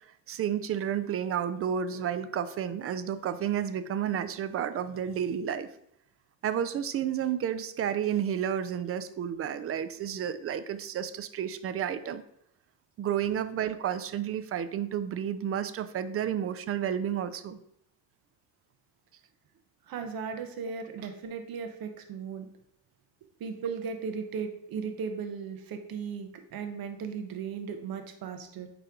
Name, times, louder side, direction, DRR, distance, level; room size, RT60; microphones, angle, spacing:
voice 1, 0.3-5.7 6.4-12.2 13.0-17.6, right 9 dB, 35° right, 12 dB, 0.4 m, -31 dB
voice 2, 19.9-22.5 23.4-28.7, right 6 dB, 50° right, 6 dB, 1.1 m, -36 dB
9.3 x 3.3 x 3.7 m, 0.76 s
cardioid pair, 115°, 44 cm